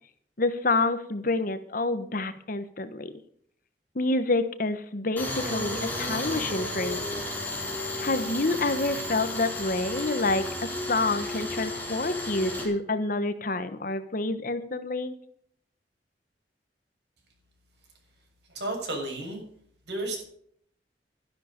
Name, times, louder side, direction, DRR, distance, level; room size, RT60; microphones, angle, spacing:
voice 1, 0.4-3.1 3.9-7.1 8.0-15.1, left 2 dB, 50° left, 11 dB, 1.2 m, -28 dB
Tools, 5.2-12.7, left 1 dB, 10° left, 4.1 m, -33 dB
voice 2, 18.5-19.4 19.9-20.2, right 2 dB, 75° right, 0 dB, 7.1 m, -32 dB
13.0 x 11.0 x 5.3 m, 0.64 s
head